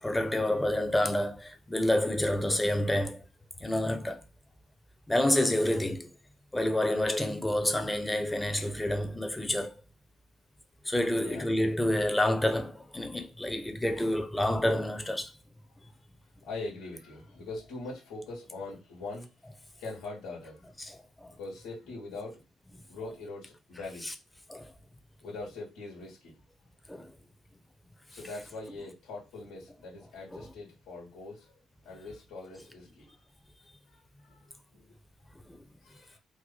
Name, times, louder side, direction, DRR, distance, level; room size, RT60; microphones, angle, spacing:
voice 1, 0.0-3.2 3.6-4.2 5.1-6.1 6.5-9.8 10.8-15.3 20.8-21.3 24.0-24.1 24.5-24.7 26.9-27.1 35.5-35.6, left 1 dB, 15° left, 0.7 m, -28 dB
voice 2, 11.1-11.5 16.4-19.3 19.8-20.7 21.4-22.4 22.9-24.1 25.2-26.3 28.1-31.6 31.8-33.1 33.9-34.9 35.4-35.5 35.8-36.2, left 3 dB, 80° left, 1.4 m, -42 dB
2.9 x 2.2 x 3.8 m
hypercardioid pair, 50°, 0 cm